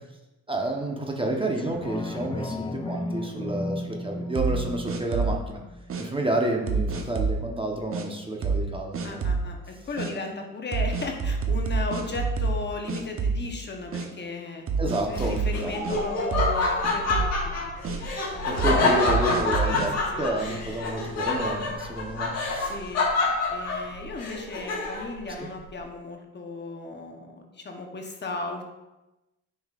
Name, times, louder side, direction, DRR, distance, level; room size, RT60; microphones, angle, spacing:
voice 1, 0.5-5.6 6.0-9.3 14.8-16.0 18.5-19.9 20.2-22.7 25.4-25.5, right 1 dB, 15° right, 1 dB, 0.9 m, -30 dB
sound 1, 1.6-6.6 7.0-7.1, left 1 dB, 15° left, 0.5 m, -35 dB
sound 2, 4.3-5.5 5.9-6.0 6.7-7.4 7.9-8.1 8.4-8.7 8.9-9.5 10.0-10.1 10.7-12.6 12.9-13.6 13.9-14.1 14.7-16.0 16.3-16.6 16.8-17.4 17.8-18.0 18.6-19.9, right 4 dB, 45° right, 0.8 m, -27 dB
voice 2, 9.0-14.6 15.1-17.6 18.3-20.7 22.6-23.1 23.5-28.6, left 3 dB, 35° left, 3 dB, 0.9 m, -36 dB
Laughter, 15.1-25.2, left 3 dB, 60° left, 1.7 m, -27 dB
7.1 x 5.5 x 2.4 m, 1.0 s
cardioid pair, 90°, 30 cm